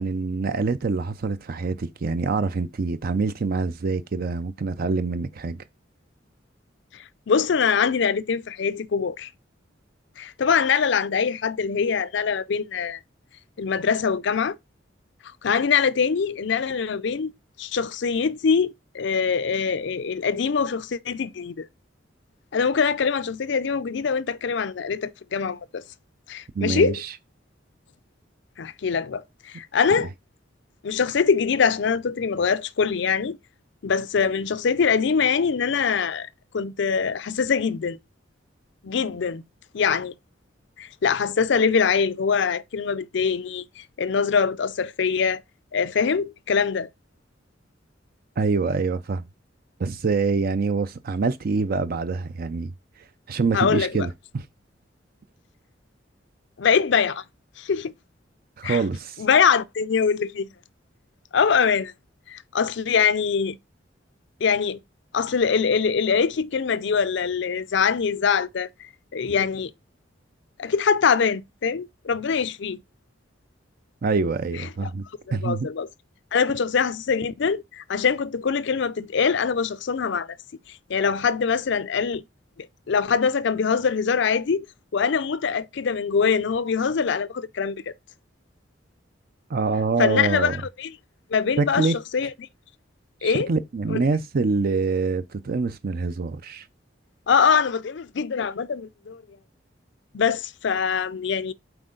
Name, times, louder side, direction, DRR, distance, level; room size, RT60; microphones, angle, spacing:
voice 1, 0.0-5.6 26.6-27.1 48.4-49.2 49.8-52.7 53.3-54.4 58.6-59.2 74.0-75.0 75.3-75.7 89.5-90.5 91.6-92.0 93.2-96.7, right 4 dB, 55° right, 0.5 m, -25 dB
voice 2, 6.9-9.3 10.2-13.0 13.6-14.6 15.4-17.3 17.6-21.7 22.5-25.8 26.3-27.0 28.6-30.1 30.8-33.4 33.8-38.0 38.8-39.4 39.7-40.1 40.8-45.4 45.7-46.9 53.5-54.1 56.6-57.2 57.6-57.9 58.6-58.8 59.2-60.5 61.3-61.9 62.3-63.6 64.4-64.8 65.1-68.7 69.1-69.7 70.6-72.8 74.6-74.9 75.3-75.9 76.3-80.3 80.7-82.2 82.6-84.7 84.9-87.9 90.0-90.9 91.3-92.3 93.2-93.5 93.9-94.0 97.3-99.2 100.1-101.5, left 6 dB, 70° left, 0.5 m, -23 dB
7.9 x 4.4 x 3.8 m
head